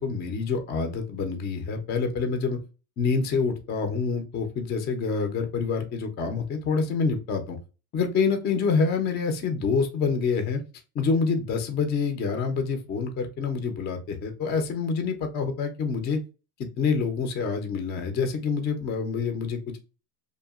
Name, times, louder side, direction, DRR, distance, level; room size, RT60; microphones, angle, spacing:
voice 1, 0.0-2.6 3.0-7.6 7.9-10.6 10.9-16.2 16.6-19.8, left 5 dB, 25° left, 6 dB, 0.4 m, -27 dB
2.8 x 2.3 x 2.2 m, 0.32 s
supercardioid pair, 105°, 49 cm